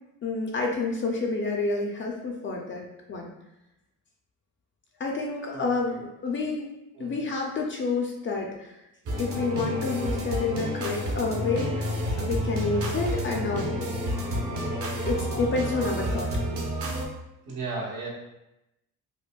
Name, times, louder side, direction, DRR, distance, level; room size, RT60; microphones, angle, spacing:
voice 1, 0.2-3.3 5.0-6.6 7.0-8.8 9.2-13.8 15.0-16.3, left 3 dB, 35° left, 0 dB, 0.4 m, -29 dB
sound 1, 9.1-17.1, equal, 45° right, 0.6 m, -30 dB
voice 2, 17.4-18.1, right 3 dB, 85° right, -4 dB, 1.1 m, -34 dB
5.0 x 2.1 x 2.2 m, 0.90 s
cardioid pair, 165°, 33 cm